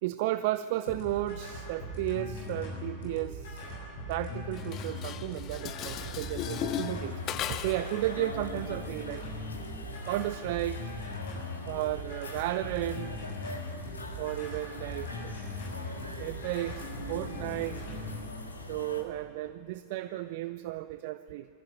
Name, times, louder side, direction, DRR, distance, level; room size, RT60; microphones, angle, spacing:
voice 1, 0.0-3.7 4.1-7.2 7.5-9.3 10.0-10.9 11.7-13.1 14.2-15.1 16.2-17.8 18.7-21.5, right 15 dB, 50° right, 13 dB, 0.5 m, -33 dB
sound 1, 0.9-18.2, left 1 dB, 55° left, 7.1 m, -40 dB
Dishes pots and pans, 4.6-7.9, left 11 dB, 35° left, 0.8 m, -37 dB
sound 2, 5.9-19.0, left 2 dB, 80° left, 2.0 m, -44 dB
voice 2, 14.9-16.3 20.0-20.2, equal, 90° right, -3 dB, 2.1 m, -50 dB
21.5 x 14.5 x 9.5 m, 2.7 s
figure-of-eight pair, 90°, 0 cm